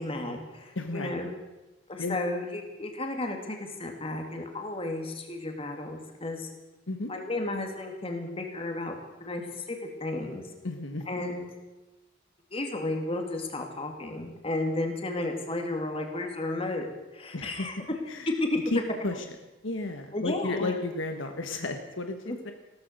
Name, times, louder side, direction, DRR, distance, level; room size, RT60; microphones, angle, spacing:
voice 1, 0.0-1.3 1.9-6.5 7.1-10.5 11.1-11.5 12.5-17.7 18.3-18.6 20.1-20.8 22.3-22.4, left 2 dB, 30° left, 4 dB, 2.3 m, -33 dB
voice 2, 0.7-1.1 2.0-2.2 6.9-7.1 10.6-11.1 17.3-17.7 18.1-18.3 18.7-19.1 19.6-22.5, left 2 dB, 70° left, 6 dB, 1.3 m, -33 dB
16.0 x 13.5 x 6.6 m, 1.1 s
head